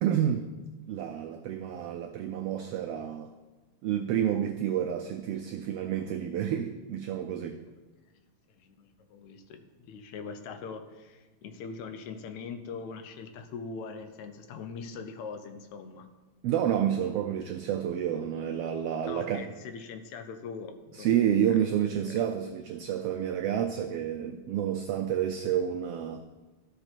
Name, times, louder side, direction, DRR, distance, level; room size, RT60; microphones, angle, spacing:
voice 1, 0.0-0.5 0.9-3.3 3.8-7.6 16.4-19.4 21.0-26.2, right 10 dB, 85° right, 7 dB, 1.3 m, -29 dB
voice 2, 8.5-16.1 19.1-21.1 21.5-21.6 22.1-22.2, left 5 dB, 80° left, 8 dB, 2.1 m, -42 dB
13.0 x 6.7 x 4.5 m, 1.2 s
omnidirectional pair, 3.3 m